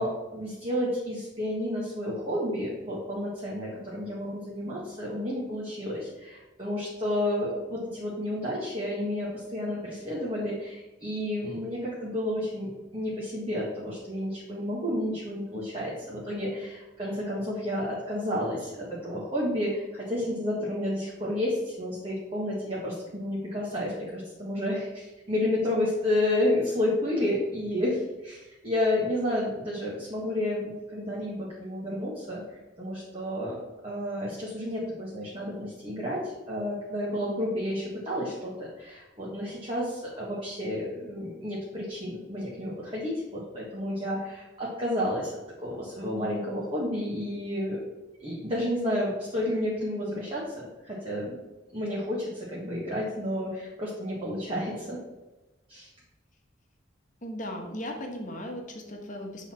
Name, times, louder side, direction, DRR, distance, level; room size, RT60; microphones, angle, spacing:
voice 1, 0.0-32.4 32.8-33.6 33.8-45.3 45.6-47.8 48.2-51.4 51.7-55.0 55.7-55.9, left 1 dB, 30° right, -6 dB, 1.6 m, -31 dB
voice 2, 57.2-59.5, left 1 dB, 40° left, 2 dB, 1.2 m, -37 dB
8.1 x 4.1 x 4.4 m, 1.1 s
head